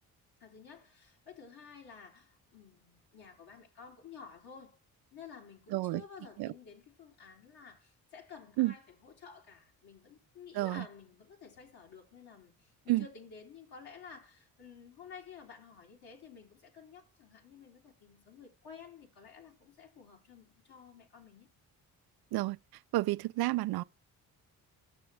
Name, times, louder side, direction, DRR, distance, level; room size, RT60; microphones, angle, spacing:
voice 1, 0.4-4.8 5.1-21.5, left 6 dB, 65° left, 3.2 m, -52 dB
voice 2, 5.7-6.0 6.4-6.5 8.6-8.7 10.5-10.8 12.9-13.1 22.3-22.6 22.9-23.8, right 18 dB, 70° right, 0.5 m, -30 dB
10.0 x 6.8 x 3.4 m
supercardioid pair, 60°, 39 cm